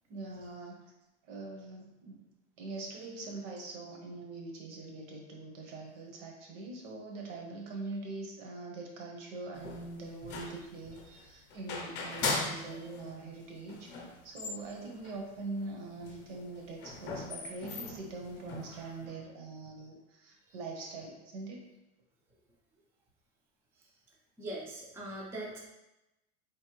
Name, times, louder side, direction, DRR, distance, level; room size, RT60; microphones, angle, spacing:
voice 1, 0.1-0.8 1.3-2.2 2.6-13.9 14.2-21.6, right 3 dB, 80° right, 0 dB, 1.1 m, -43 dB
sound 1, 9.5-13.1 13.4-13.5 13.7-15.2 15.6-15.7 15.9-19.1, left 3 dB, 30° left, 0.7 m, -39 dB
voice 2, 18.7-19.1 20.5-20.6 23.8-23.9 24.4-25.6, right 1 dB, 5° right, -3 dB, 0.4 m, -43 dB
4.2 x 3.3 x 3.0 m, 0.94 s
supercardioid pair, 155°, 37 cm